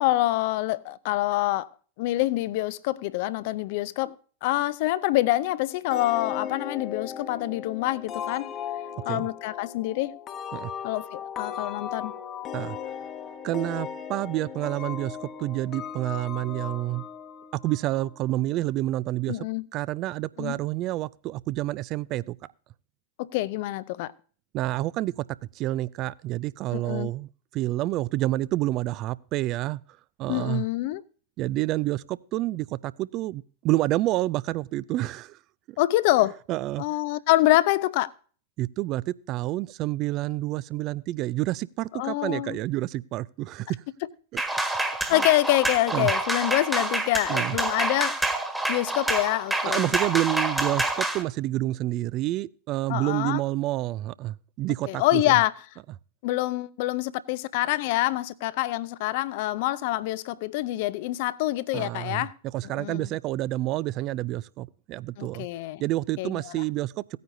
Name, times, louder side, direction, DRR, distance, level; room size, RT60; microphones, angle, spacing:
voice 1, 0.0-1.7 2.0-4.1 4.4-8.5 9.1-10.2 10.8-12.2 19.3-19.6 20.4-20.6 23.2-24.1 26.7-27.1 30.3-31.0 35.8-36.4 36.8-38.1 41.9-42.6 45.1-48.2 48.7-49.9 52.9-53.4 54.9-55.5 56.2-62.3 62.7-63.1 65.2-65.8 66.2-66.6, left 17 dB, 50° left, 0.5 m, -26 dB
sound 1, 5.9-18.3, left 8 dB, 35° left, 1.1 m, -37 dB
voice 2, 13.4-17.0 17.6-19.4 19.7-22.4 24.5-25.3 25.5-29.8 30.2-30.7 31.4-35.4 36.5-36.9 38.6-43.8 44.3-44.4 45.1-45.2 45.9-46.1 47.3-47.6 49.7-55.4 61.7-62.3 62.5-65.5 65.8-67.2, right 16 dB, 40° right, 0.4 m, -28 dB
sound 2, 44.4-51.2, right 2 dB, 5° right, 1.5 m, -27 dB
17.0 x 9.3 x 2.7 m
figure-of-eight pair, 90°, 0 cm